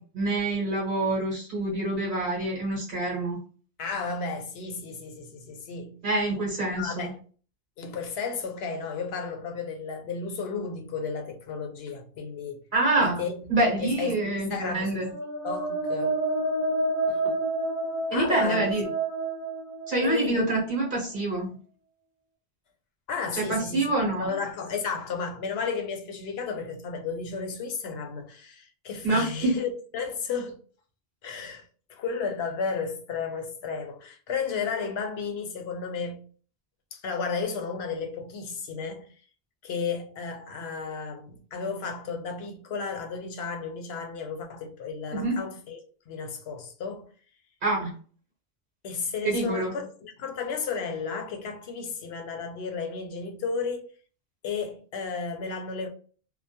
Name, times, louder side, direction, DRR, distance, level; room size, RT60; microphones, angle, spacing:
voice 1, 0.1-3.4 6.0-7.1 12.7-13.2 13.5-15.1 18.1-18.8 19.9-21.5 23.3-24.3 29.0-29.6 45.1-45.5 47.6-48.0 49.2-49.7, right 2 dB, 55° right, 1.0 m, -26 dB
voice 2, 3.8-6.0 6.8-7.2 7.8-12.6 13.0-15.0 15.4-16.2 17.1-17.4 18.1-18.7 20.0-20.5 23.1-23.9 24.2-30.6 31.2-31.6 31.9-36.3 36.9-39.1 39.6-45.8 46.1-47.0 48.8-53.9 54.4-55.9, left 5 dB, 80° left, 0.8 m, -33 dB
sound 1, 14.8-20.5, right 2 dB, 30° left, 0.4 m, -29 dB
2.2 x 2.2 x 2.6 m
omnidirectional pair, 1.0 m